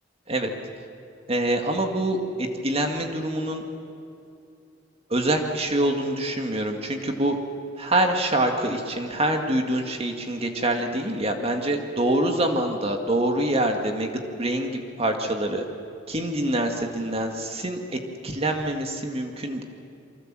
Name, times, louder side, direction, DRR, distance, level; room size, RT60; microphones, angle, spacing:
voice 1, 1.3-3.6 5.1-7.4 7.8-14.1 14.4-15.6 16.1-17.8 18.2-19.6, right 1 dB, 30° right, 4 dB, 2.1 m, -25 dB
28.0 x 24.5 x 7.6 m, 2.6 s
head